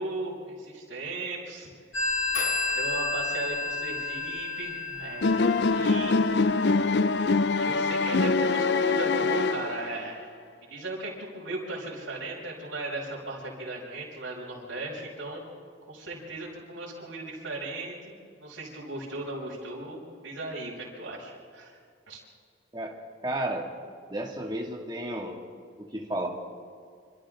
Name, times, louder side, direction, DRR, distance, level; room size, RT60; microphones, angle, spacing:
voice 1, 0.0-1.7 2.7-5.3 5.7-6.2 7.6-10.3 10.6-15.4 15.9-21.8 22.1-22.2, right 2 dB, 75° right, -6 dB, 5.8 m, -37 dB
Telephone, 1.9-7.3, left 3 dB, 85° left, 3.3 m, -31 dB
sound 1, 5.2-10.1, left 3 dB, 60° left, 0.6 m, -24 dB
voice 2, 23.2-23.7 24.1-25.4 25.8-26.3, right 1 dB, 20° right, 0 dB, 2.5 m, -32 dB
27.5 x 26.5 x 3.9 m, 2.2 s
head